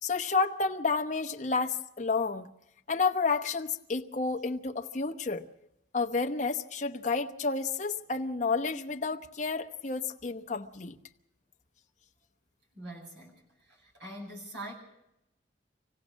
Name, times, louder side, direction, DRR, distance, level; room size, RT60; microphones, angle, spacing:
voice 1, 0.0-2.5 2.9-5.5 5.9-11.0, left 4 dB, 40° left, 4 dB, 0.9 m, -30 dB
voice 2, 12.8-13.4 13.7-14.7, right 1 dB, 65° right, -1 dB, 7.8 m, -43 dB
26.0 x 16.5 x 6.3 m, 0.86 s
head